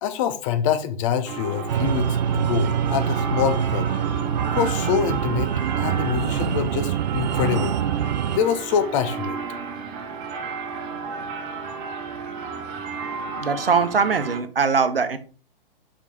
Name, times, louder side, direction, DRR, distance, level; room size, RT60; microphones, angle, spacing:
voice 1, 0.0-3.9 4.4-7.8 8.3-9.4, left 8 dB, 35° left, 0.7 m, -25 dB
sound 1, 1.3-14.4, right 5 dB, 30° right, 1.0 m, -32 dB
sound 2, 1.7-8.4, right 9 dB, 50° right, 0.4 m, -25 dB
voice 2, 13.4-15.2, right 5 dB, 75° right, 1.0 m, -21 dB
5.1 x 5.0 x 4.1 m
figure-of-eight pair, 110°, 29 cm